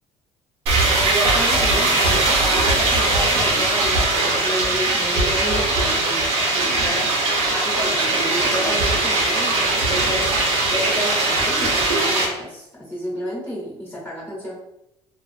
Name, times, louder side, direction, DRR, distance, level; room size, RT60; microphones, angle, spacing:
sound 1, 0.7-12.3, right 2 dB, 80° right, 0.8 m, -20 dB
voice 1, 1.0-6.2 6.5-7.1 7.5-10.3 10.7-14.6, equal, 15° left, -5 dB, 0.8 m, -30 dB
2.4 x 2.3 x 2.5 m, 0.86 s
cardioid pair, 115°, 11 cm